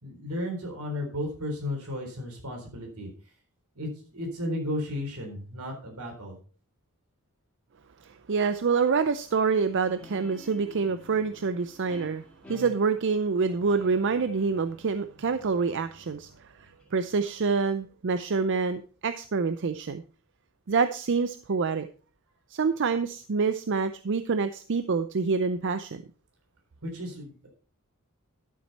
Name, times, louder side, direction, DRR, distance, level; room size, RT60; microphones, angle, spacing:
voice 1, 0.0-3.1 3.8-6.4 26.8-27.5, left 1 dB, 80° right, 2 dB, 4.0 m, -34 dB
voice 2, 8.0-12.2 12.5-20.0 20.7-21.9 22.5-26.0, right 5 dB, 55° right, 11 dB, 0.5 m, -27 dB
Guitar, 9.9-17.1, equal, 5° left, 2.6 m, -50 dB
12.0 x 7.4 x 4.2 m, 0.38 s
head